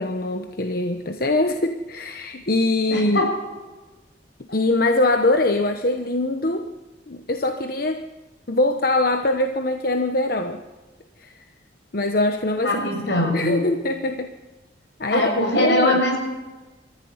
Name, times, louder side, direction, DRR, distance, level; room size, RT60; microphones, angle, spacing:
voice 1, 0.0-3.3 4.5-6.7 7.1-8.1 8.5-10.6 11.2-11.3 11.9-12.8 13.3-14.3 15.0-16.0, left 2 dB, 55° left, 6 dB, 1.1 m, -22 dB
voice 2, 2.9-3.3 12.6-13.6 15.1-16.2, left 1 dB, 75° left, 1 dB, 7.0 m, -21 dB
24.0 x 15.0 x 9.6 m, 1.2 s
head